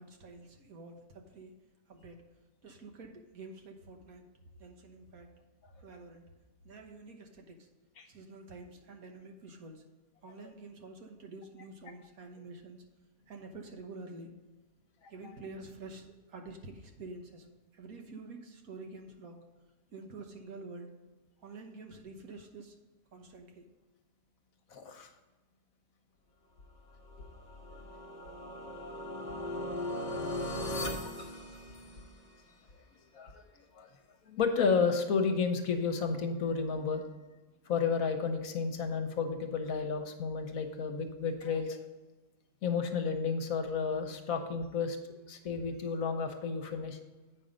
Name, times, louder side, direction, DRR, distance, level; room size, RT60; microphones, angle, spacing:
voice 1, 0.0-1.5 1.9-2.2 2.6-4.3 4.6-5.3 5.8-6.2 6.6-7.7 8.1-9.8 10.2-12.8 13.3-14.3 15.1-17.5 17.7-19.4 19.9-20.9 21.4-22.7 23.1-23.6, right 3 dB, 70° right, 3 dB, 1.5 m, -48 dB
voice 2, 24.7-25.1 33.1-33.4 33.7-33.9 34.3-37.0 37.7-41.8 42.6-45.0 45.3-47.0, left 5 dB, 65° left, 6 dB, 1.3 m, -32 dB
sound 1, 27.1-32.3, left 1 dB, 35° left, 1.0 m, -38 dB
8.5 x 5.5 x 5.1 m, 1.2 s
omnidirectional pair, 1.6 m